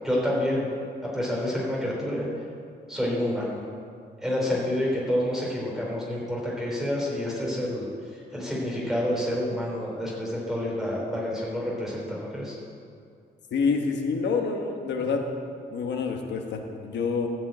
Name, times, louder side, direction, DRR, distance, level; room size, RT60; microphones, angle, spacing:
voice 1, 0.0-0.7 1.0-2.3 2.9-3.6 4.2-7.9 8.3-12.5, left 1 dB, ahead, -5 dB, 3.5 m, -28 dB
voice 2, 13.5-15.2 15.7-17.3, left 5 dB, 90° left, 3 dB, 1.2 m, -27 dB
13.5 x 5.5 x 8.6 m, 2.3 s
wide cardioid pair, 160°, 18 cm